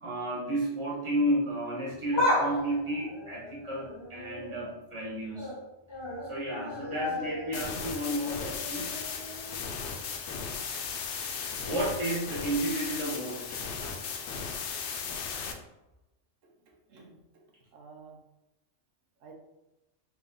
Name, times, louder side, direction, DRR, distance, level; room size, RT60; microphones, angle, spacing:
voice 1, 0.0-5.5 6.2-8.9 11.4-13.6, right 1 dB, 25° right, -5 dB, 1.2 m, -32 dB
sound 1, 1.9-4.7 5.1-5.6 5.9-9.8 10.2-10.3 11.3-11.4, left 1 dB, 25° left, 0.6 m, -34 dB
sound 2, 7.5-15.5, left 6 dB, 70° left, 0.8 m, -36 dB
voice 2, 16.4-18.2 19.2-19.4, right 5 dB, 90° right, 1 dB, 1.1 m, -53 dB
3.5 x 2.9 x 3.8 m, 0.95 s
omnidirectional pair, 1.3 m